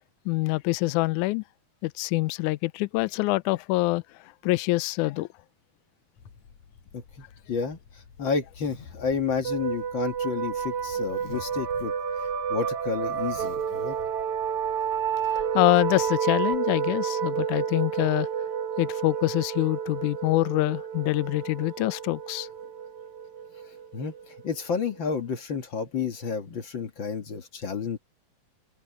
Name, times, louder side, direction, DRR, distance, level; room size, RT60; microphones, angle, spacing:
voice 1, 0.3-1.4 1.8-4.0 4.4-5.3 15.5-18.3 18.8-22.5, left 21 dB, 80° left, 1.9 m, -25 dB
Zipper (clothing), 6.2-16.1, left 6 dB, 60° left, 4.4 m, -50 dB
voice 2, 7.5-7.8 8.2-11.9 12.5-14.0 23.9-28.0, left 5 dB, 45° left, 1.8 m, -30 dB
sound 1, 9.4-24.8, right 7 dB, 60° right, 3.0 m, -30 dB
omnidirectional pair, 3.8 m